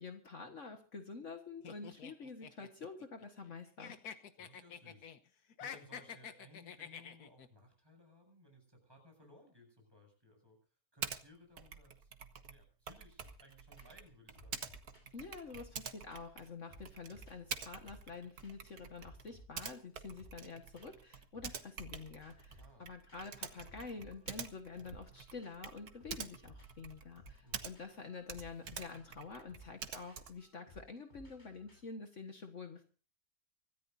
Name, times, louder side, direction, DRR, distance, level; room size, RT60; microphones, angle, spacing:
voice 1, 0.0-4.0 15.1-32.8, left 4 dB, 55° left, 5 dB, 1.8 m, -48 dB
sound 1, 1.6-3.5 3.8-5.2 5.5-7.5, left 7 dB, 90° left, 1.6 m, -48 dB
voice 2, 4.4-10.6 10.9-14.7 22.6-22.9 27.4-27.7, left 1 dB, 15° right, 2 dB, 7.7 m, -61 dB
Typing, 11.0-11.2 11.6-28.0 28.2-30.5, right 7 dB, 85° right, 1.8 m, -48 dB
sound 2, 13.2-13.5 13.8-14.1 14.3-16.4 16.7-18.2 18.4-18.7 19.0-21.1 21.3-31.8, equal, 30° left, 8.0 m, -61 dB
25.0 x 14.0 x 2.7 m, 0.39 s
omnidirectional pair, 1.6 m